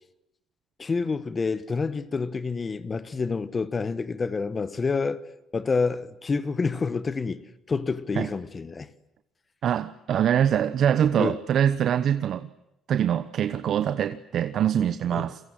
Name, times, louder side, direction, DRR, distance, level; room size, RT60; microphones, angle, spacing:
voice 1, 0.8-5.2 5.5-8.9 11.2-11.4 15.1-15.3, left 4 dB, 25° left, 1.3 m, -28 dB
voice 2, 9.6-12.5 12.9-15.4, right 9 dB, 50° right, 1.0 m, -24 dB
29.0 x 23.5 x 7.7 m
cardioid pair, 135°, 0 cm